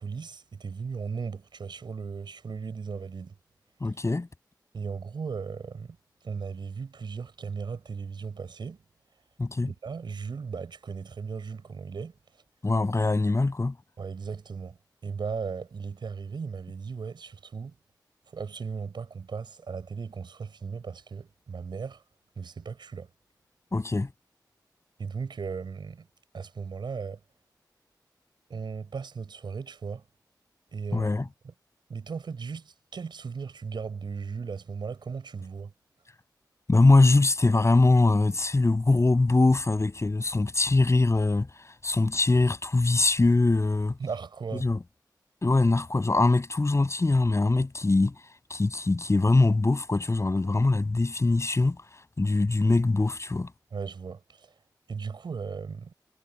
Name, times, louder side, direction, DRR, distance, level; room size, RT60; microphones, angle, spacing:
voice 1, 0.0-3.3 4.7-6.0 6.2-8.8 9.7-12.1 14.0-14.8 15.0-17.7 18.3-22.0 22.4-23.1 25.0-26.1 26.3-27.2 28.5-30.0 30.7-31.1 31.9-35.7 44.0-44.7 53.7-54.5 54.9-55.9, right 5 dB, 85° right, 6.8 m, -36 dB
voice 2, 3.8-4.3 9.4-9.7 12.6-13.7 23.7-24.1 30.9-31.2 36.7-41.5 41.8-44.0 44.6-44.8 45.4-48.1 48.5-51.8 52.2-53.5, left 2 dB, 40° left, 7.7 m, -22 dB
wide cardioid pair, 65°, 8 cm